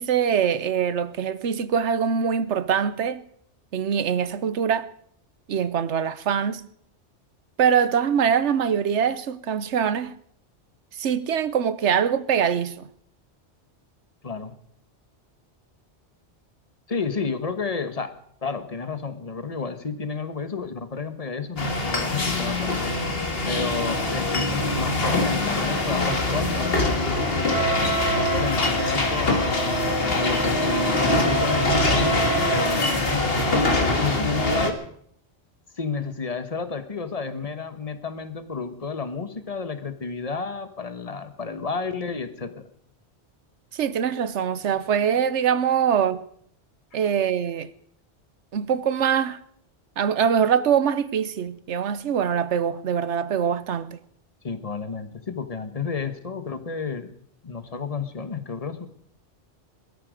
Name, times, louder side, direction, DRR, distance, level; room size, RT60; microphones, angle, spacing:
voice 1, 0.0-3.2 3.7-4.9 5.5-6.6 7.6-10.1 11.0-12.9 43.7-46.2 46.9-47.7 48.5-49.4 50.0-54.0, right 8 dB, 80° right, 1.1 m, -23 dB
voice 2, 14.2-14.6 16.9-18.1 18.4-22.7 23.5-27.7 28.1-34.8 35.8-42.6 54.4-57.1 57.4-58.9, left 5 dB, 35° left, 1.3 m, -31 dB
sound 1, 21.6-34.7, left 1 dB, 55° left, 2.0 m, -23 dB
21.0 x 13.5 x 5.1 m
omnidirectional pair, 1.2 m